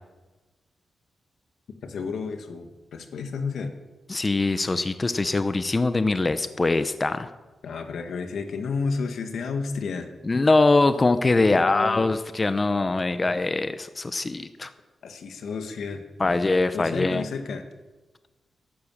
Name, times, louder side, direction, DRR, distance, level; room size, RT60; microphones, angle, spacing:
voice 1, 1.8-3.7 7.6-10.1 11.4-12.0 15.0-16.0 16.7-17.6, left 4 dB, 85° left, 6 dB, 1.8 m, -31 dB
voice 2, 4.1-7.3 10.2-14.7 16.2-17.2, left 3 dB, 25° left, 11 dB, 0.7 m, -22 dB
14.5 x 11.5 x 7.3 m, 1.2 s
cardioid pair, 100°, 0 cm